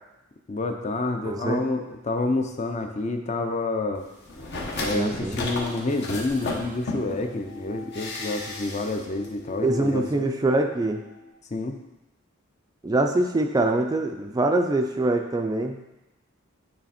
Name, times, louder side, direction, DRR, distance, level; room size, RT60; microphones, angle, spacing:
voice 1, 0.5-4.1 4.8-10.3 11.5-11.8, left 2 dB, 35° left, 5 dB, 0.5 m, -28 dB
voice 2, 1.2-1.6 4.9-5.4 9.6-11.0 12.8-15.8, right 2 dB, 20° right, 4 dB, 0.3 m, -24 dB
sound 1, 4.3-7.3 7.9-9.0 9.2-9.3, left 2 dB, 55° left, 1.0 m, -33 dB
sound 2, 5.2-11.3, left 1 dB, 90° left, 2.4 m, -43 dB
8.8 x 3.3 x 4.2 m, 1.0 s
head